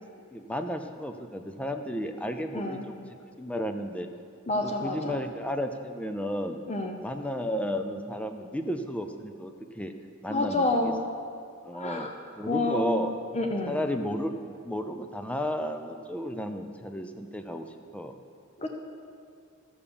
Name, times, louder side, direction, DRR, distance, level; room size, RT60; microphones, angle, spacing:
voice 1, 0.3-3.1 3.4-4.1 4.6-6.6 7.0-9.9 10.2-10.9 11.6-12.1 12.4-13.1 13.6-17.7 17.9-18.1, equal, 5° left, 6 dB, 0.6 m, -33 dB
voice 2, 4.5-5.1 6.7-7.0 10.3-11.0 11.8-12.1 12.5-13.1 13.3-13.8 18.6-18.7, left 2 dB, 30° left, 3 dB, 0.8 m, -28 dB
13.0 x 7.0 x 6.9 m, 2.4 s
head